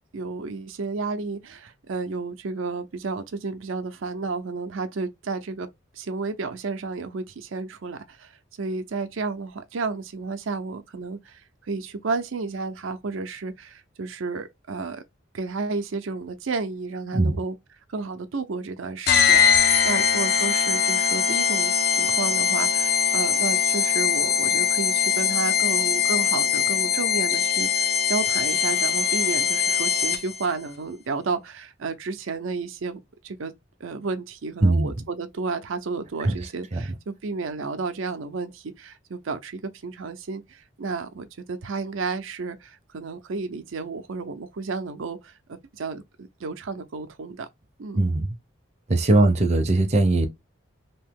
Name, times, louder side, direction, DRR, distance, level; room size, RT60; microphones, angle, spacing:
voice 1, 0.1-5.7 5.9-15.0 15.3-17.6 17.9-33.5 33.8-47.5 47.8-48.0 49.2-49.3, right 4 dB, 85° right, 0.5 m, -32 dB
sound 1, 19.1-30.4, left 7 dB, 50° left, 0.5 m, -22 dB
voice 2, 34.6-34.9 36.2-36.4 36.7-36.8 48.0-48.3 48.9-50.3, right 2 dB, 35° right, 0.5 m, -20 dB
2.9 x 2.7 x 3.5 m
head